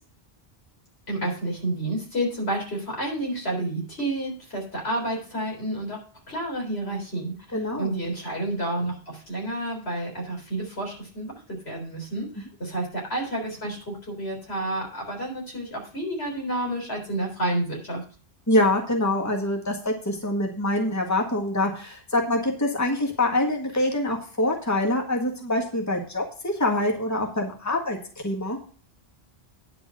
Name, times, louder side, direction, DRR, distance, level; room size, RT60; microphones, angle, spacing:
voice 1, 1.1-6.0 6.3-18.0, right 1 dB, 85° left, -1 dB, 4.2 m, -30 dB
voice 2, 7.5-7.9 18.5-28.0 28.2-28.6, left 1 dB, 15° left, 1 dB, 1.7 m, -25 dB
10.0 x 5.2 x 7.6 m, 0.40 s
omnidirectional pair, 1.0 m